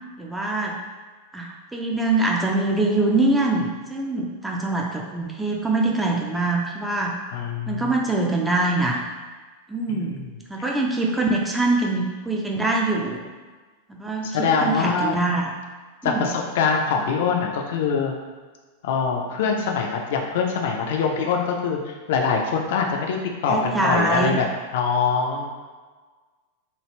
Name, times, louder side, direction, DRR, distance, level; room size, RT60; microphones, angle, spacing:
voice 1, 0.2-0.8 1.3-7.1 7.7-9.0 9.7-10.2 10.5-13.2 13.9-15.4 16.0-16.3 23.5-24.4, right 2 dB, 10° right, -1 dB, 0.4 m, -23 dB
voice 2, 7.3-8.0 9.9-10.3 10.6-10.7 14.2-15.2 16.0-18.2 18.8-23.2 23.4-25.5, left 5 dB, 55° left, 1 dB, 0.4 m, -24 dB
3.3 x 2.3 x 3.1 m, 1.4 s
figure-of-eight pair, 90°, 0 cm